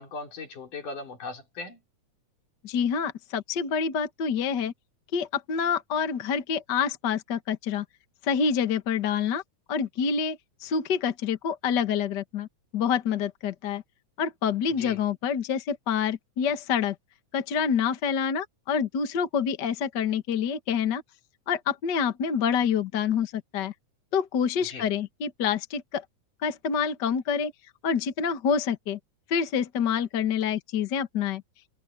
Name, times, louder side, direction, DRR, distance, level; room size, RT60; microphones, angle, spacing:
voice 1, 0.0-1.8 14.7-15.0 24.6-24.9, left 3 dB, 75° left, 6.1 m, -38 dB
voice 2, 2.6-4.7 5.1-7.8 8.2-9.4 9.7-12.5 12.7-13.8 14.2-16.9 17.3-21.0 21.5-23.7 24.1-26.0 26.4-27.5 27.8-29.0 29.3-31.4, left 7 dB, 45° left, 1.5 m, -27 dB
omnidirectional pair, 3.6 m